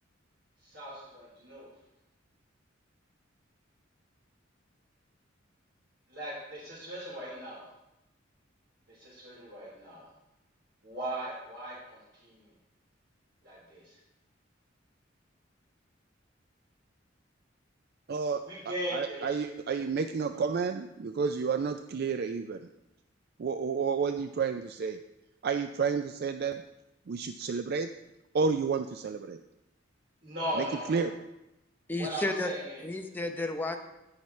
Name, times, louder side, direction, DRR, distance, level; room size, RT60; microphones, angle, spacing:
voice 1, 0.6-1.7 6.1-7.7 8.9-10.1 10.8-12.5 13.4-14.0 18.4-19.3 20.3-20.4 30.2-31.1 31.9-32.8, right 1 dB, 75° right, -10 dB, 4.2 m, -38 dB
voice 2, 18.1-22.6 23.4-25.0 25.4-26.6 27.1-27.9 28.3-29.4 30.6-31.1, right 5 dB, 55° right, 8 dB, 0.4 m, -31 dB
voice 3, 31.9-32.5 32.8-33.8, left 2 dB, 10° left, 4 dB, 0.7 m, -32 dB
17.5 x 5.8 x 3.2 m, 0.92 s
head